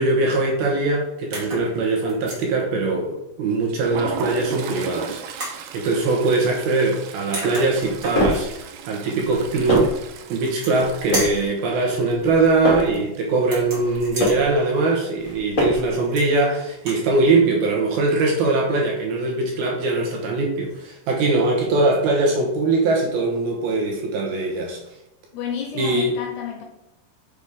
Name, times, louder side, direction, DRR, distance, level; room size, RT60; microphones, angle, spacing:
voice 1, 0.0-5.2 5.7-8.5 8.9-9.9 10.3-24.8 25.7-26.2, right 3 dB, 65° right, 2.7 m, -21 dB
sound 1, 1.3-1.7 2.1-2.5 4.2-4.7 5.4-5.6 7.0-7.1 7.3-8.6 10.3-10.9 11.1-11.5 13.4-14.4 15.9-16.4 16.7-17.0, right 1 dB, 45° right, 1.1 m, -32 dB
Toilet flush, 3.5-14.3 14.6-14.8 15.1-15.3 16.2-16.7, right 8 dB, 85° right, 2.2 m, -37 dB
sound 2, 7.7-8.5 9.2-10.1 10.7-11.4 12.1-13.0 13.7-14.5 15.2-16.0, equal, 30° left, 1.5 m, -24 dB
voice 2, 25.3-26.6, left 7 dB, 75° left, 2.6 m, -30 dB
6.9 x 6.2 x 3.6 m
omnidirectional pair, 5.3 m